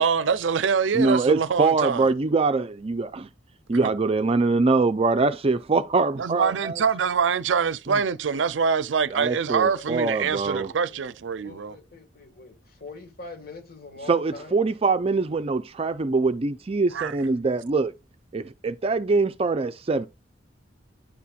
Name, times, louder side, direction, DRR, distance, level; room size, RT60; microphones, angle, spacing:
voice 1, 0.0-2.1 3.8-3.9 6.2-11.8 16.9-17.2, right 6 dB, 90° right, 0.5 m, -24 dB
voice 2, 0.9-3.3 3.7-6.8 7.9-8.0 9.1-10.7 14.1-17.9 18.3-20.1, right 3 dB, 30° right, 0.4 m, -23 dB
voice 3, 9.2-11.2 11.4-14.6, left 3 dB, 55° left, 1.8 m, -44 dB
10.0 x 4.2 x 2.3 m
head